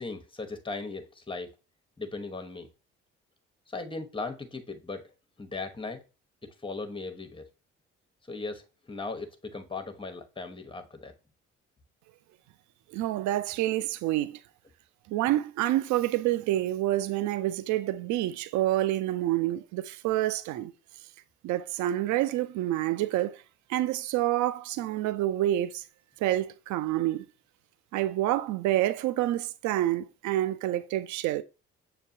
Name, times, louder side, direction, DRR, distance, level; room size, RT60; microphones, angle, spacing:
voice 1, 0.0-1.5 2.0-2.7 3.7-5.1 5.4-6.0 6.4-7.5 8.3-11.1, left 3 dB, 15° left, 1.0 m, -38 dB
voice 2, 12.9-14.4 15.1-20.7 21.4-23.4 23.7-25.8 26.2-27.2 27.9-31.4, right 14 dB, 65° right, 0.4 m, -28 dB
6.6 x 2.8 x 2.6 m
hypercardioid pair, 50°, 31 cm